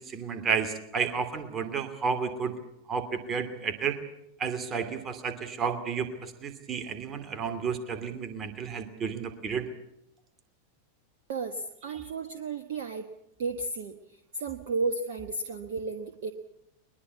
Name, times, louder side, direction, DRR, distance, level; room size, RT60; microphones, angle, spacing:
voice 1, 0.0-2.6 2.9-4.0 4.4-9.7, right 6 dB, 25° right, 9 dB, 2.8 m, -31 dB
voice 2, 11.3-13.1 13.4-16.3, right 3 dB, 55° right, 7 dB, 1.5 m, -33 dB
22.0 x 21.5 x 8.3 m, 0.79 s
figure-of-eight pair, 90°, 0 cm